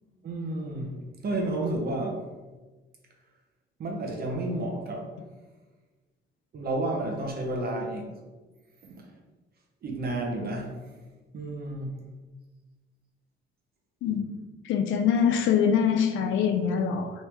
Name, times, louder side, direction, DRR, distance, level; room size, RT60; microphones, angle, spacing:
voice 1, 0.2-1.0 1.2-2.2 3.8-5.1 6.5-8.1 8.9-9.0 9.8-10.7 11.3-12.0, right 2 dB, 50° right, 1 dB, 0.8 m, -31 dB
voice 2, 14.7-17.1, left 7 dB, 75° left, 5 dB, 0.5 m, -24 dB
3.0 x 2.7 x 3.4 m, 1.3 s
cardioid pair, 90°, 20 cm